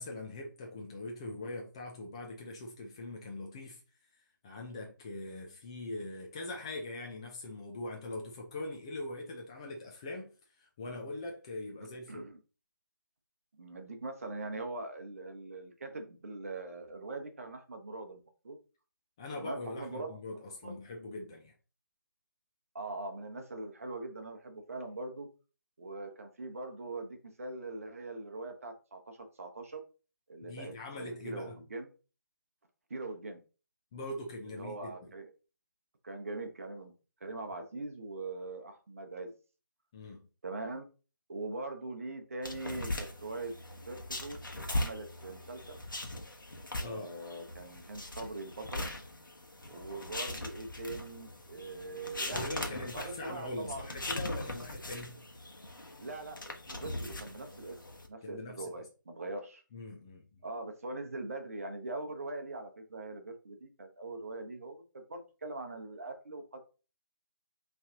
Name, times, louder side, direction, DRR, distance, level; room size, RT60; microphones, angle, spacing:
voice 1, 0.0-3.8 4.1-12.3 19.2-21.5 30.4-31.6 33.9-35.1 39.9-40.3 46.8-47.1 52.3-55.3 58.2-58.7 59.7-60.4, left 2 dB, 15° left, 0.5 m, -42 dB
voice 2, 12.1-12.4 13.6-18.6 19.4-20.1 20.6-20.7 22.7-25.3 25.8-29.8 30.3-31.9 32.9-33.4 34.5-35.3 36.0-36.9 37.2-39.3 40.4-40.8 41.3-43.5 43.9-44.4 44.7-45.8 46.8-48.9 49.7-54.1 56.0-57.8 58.1-59.6 60.4-66.6, right 2 dB, 45° right, 1.0 m, -42 dB
sound 1, 42.4-58.1, left 1 dB, 70° left, 1.2 m, -40 dB
5.5 x 3.3 x 2.8 m
figure-of-eight pair, 150°, 11 cm